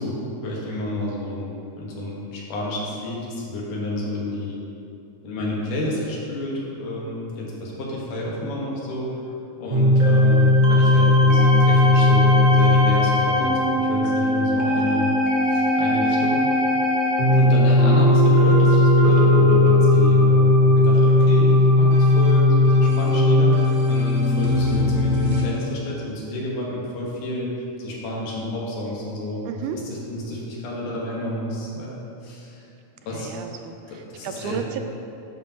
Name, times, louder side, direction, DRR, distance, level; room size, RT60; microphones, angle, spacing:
voice 1, 0.0-4.7 5.2-9.2 9.6-15.1 15.5-16.4 17.3-27.5 27.8-32.7 33.0-33.3 33.6-34.6, left 1 dB, 80° left, -4 dB, 2.8 m, -30 dB
sound 1, 9.7-25.4, left 2 dB, 55° right, 1.2 m, -17 dB
voice 2, 17.3-17.6 29.5-29.8 33.1-33.8 34.2-34.8, right 8 dB, 85° right, 6 dB, 2.1 m, -32 dB
11.0 x 6.1 x 2.9 m, 2.7 s
omnidirectional pair, 3.6 m